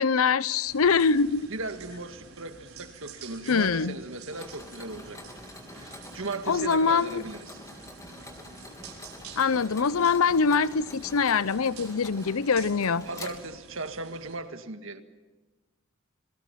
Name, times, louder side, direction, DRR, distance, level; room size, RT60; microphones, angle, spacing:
voice 1, 0.0-1.5 3.5-3.9 6.5-7.2 9.4-13.0, left 5 dB, 85° left, 0.7 m, -24 dB
sound 1, 0.6-14.4, right 5 dB, 85° right, 4.7 m, -49 dB
voice 2, 1.5-5.2 5.7-7.7 13.0-15.0, right 3 dB, 65° right, 1.8 m, -37 dB
Mechanisms, 4.3-13.9, left 1 dB, 15° left, 3.1 m, -46 dB
28.5 x 23.5 x 5.9 m
head